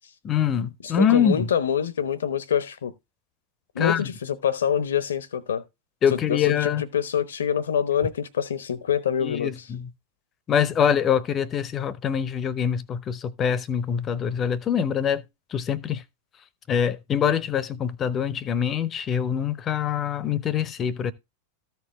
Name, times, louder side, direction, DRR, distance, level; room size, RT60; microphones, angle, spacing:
voice 1, 0.2-1.5 3.8-4.1 6.0-6.8 9.2-9.9 10.5-15.2 15.5-16.0 16.7-21.1, left 8 dB, 25° left, 0.8 m, -24 dB
voice 2, 0.9-2.9 3.7-5.6 6.3-9.5, left 8 dB, 65° left, 0.9 m, -25 dB
14.0 x 4.7 x 3.3 m
figure-of-eight pair, 90°, 0 cm